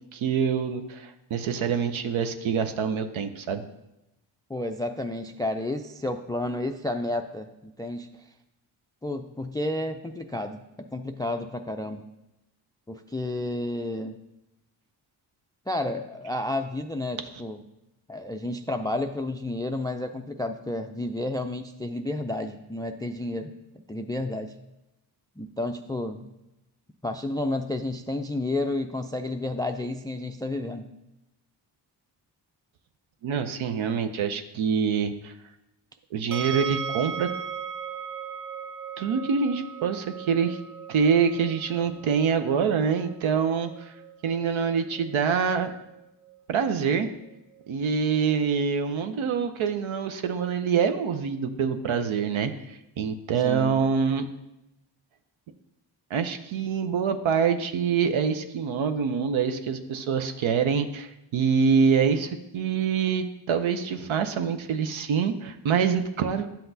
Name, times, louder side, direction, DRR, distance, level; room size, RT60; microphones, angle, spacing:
voice 1, 0.1-3.6 33.2-35.3 36.1-37.3 39.0-40.6 40.9-43.9 44.2-45.7 46.5-47.1 47.7-54.3 56.1-66.5, right 6 dB, 75° right, 8 dB, 0.7 m, -25 dB
voice 2, 4.5-8.1 9.0-12.0 12.9-14.2 15.7-17.6 18.1-23.5 23.9-24.5 25.4-26.3 27.0-30.9 53.4-53.8, left 1 dB, 10° left, 7 dB, 0.3 m, -31 dB
sound 1, 36.3-49.3, right 7 dB, 30° right, 0.6 m, -39 dB
10.0 x 5.8 x 2.7 m, 0.91 s
cardioid pair, 50°, 49 cm